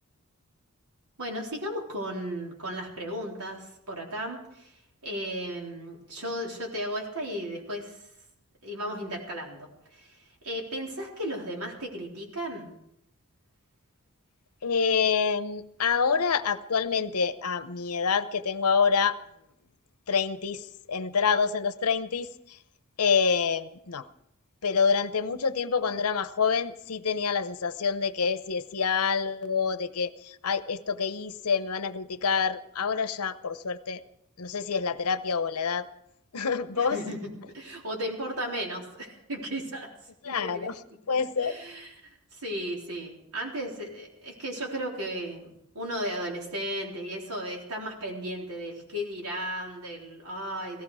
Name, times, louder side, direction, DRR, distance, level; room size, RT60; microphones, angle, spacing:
voice 1, 1.2-8.0 8.6-12.7 36.7-37.3 37.5-39.9 40.2-40.7 41.4-50.8, equal, 85° right, -1 dB, 3.9 m, -35 dB
voice 2, 14.6-19.2 20.1-20.6 20.9-22.3 23.0-24.1 24.6-34.0 34.4-35.9 36.3-37.0 40.2-40.7 41.1-41.6, left 5 dB, 90° left, 12 dB, 0.8 m, -27 dB
17.5 x 15.0 x 4.8 m, 0.79 s
head